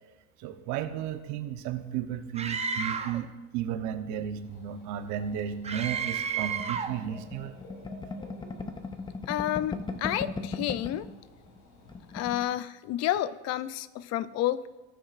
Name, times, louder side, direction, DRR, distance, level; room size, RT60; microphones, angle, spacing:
voice 1, 0.4-3.3 3.5-7.6, right 9 dB, 70° right, 8 dB, 0.9 m, -34 dB
Screaming, 2.4-3.2 5.6-7.0, right 6 dB, 20° right, 0.7 m, -32 dB
Dog / Bird, 4.4-12.4, left 1 dB, 80° left, 3.4 m, -53 dB
sound 1, 6.6-11.1 11.5-11.6 11.8-12.4, left 4 dB, 15° left, 0.7 m, -37 dB
voice 2, 9.3-11.1 12.1-14.7, left 12 dB, 55° left, 15 dB, 0.5 m, -30 dB
18.5 x 6.1 x 2.5 m, 1.1 s
supercardioid pair, 100°, 30 cm